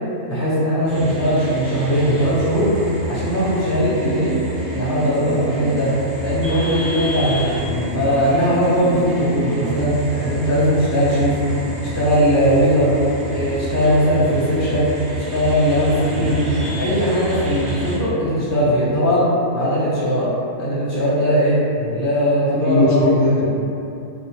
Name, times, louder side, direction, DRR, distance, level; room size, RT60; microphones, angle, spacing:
voice 1, 0.2-2.8 3.0-4.4 4.7-5.9 6.2-7.6 7.9-11.4 11.8-13.0 13.3-14.9 15.3-16.4 16.8-19.3 19.5-20.3 20.6-21.6 21.9-23.5, equal, 15° left, -11 dB, 0.6 m, -19 dB
sound 1, 0.9-18.0, right 1 dB, 65° right, 1.1 m, -29 dB
voice 2, 7.6-7.9 11.4-11.7 16.0-16.8 21.8-21.9 22.5-23.5, left 2 dB, 80° left, -5 dB, 1.0 m, -21 dB
2.7 x 2.1 x 2.8 m, 2.7 s
omnidirectional pair, 1.5 m